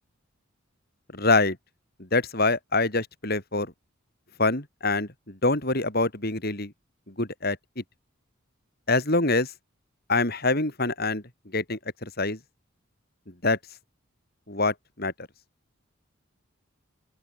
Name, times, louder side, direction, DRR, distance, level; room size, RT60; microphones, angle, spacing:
voice 1, 1.1-1.6 2.0-3.7 4.4-6.7 7.2-7.8 8.9-9.5 10.1-11.2 11.5-12.4 13.4-13.6 14.5-15.1, left 3 dB, 50° left, 4.7 m, -25 dB
open air
head